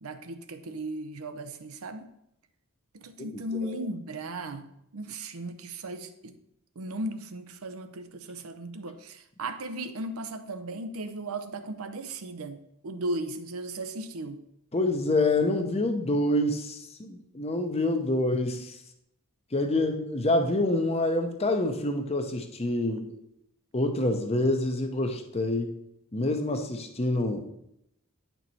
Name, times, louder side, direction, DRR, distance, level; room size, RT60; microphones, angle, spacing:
voice 1, 0.0-2.1 2.9-6.3 6.8-14.4, right 1 dB, 85° right, 9 dB, 0.7 m, -36 dB
voice 2, 3.2-3.8 14.7-18.8 19.5-23.2 23.7-25.7 26.1-27.4, left 2 dB, 30° left, 6 dB, 0.7 m, -27 dB
8.9 x 4.6 x 4.1 m, 0.79 s
head